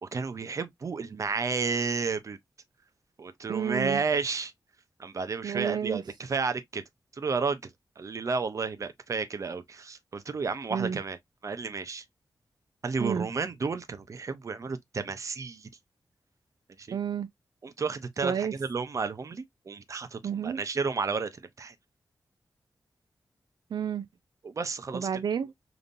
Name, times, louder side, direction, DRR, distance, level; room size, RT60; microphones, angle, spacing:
voice 1, 0.0-2.4 3.2-4.5 5.0-6.8 7.1-7.7 8.0-11.2 11.4-12.0 12.8-15.7 16.8-17.0 17.6-21.7 24.4-25.1, right 4 dB, 45° right, 0.7 m, -32 dB
voice 2, 3.5-4.0 5.4-6.0 10.7-11.0 13.0-13.3 16.9-17.3 18.2-18.5 20.2-20.6 23.7-24.1 24.9-25.5, right 7 dB, 75° right, 0.4 m, -30 dB
5.2 x 2.9 x 2.5 m
wide cardioid pair, 160°, 7 cm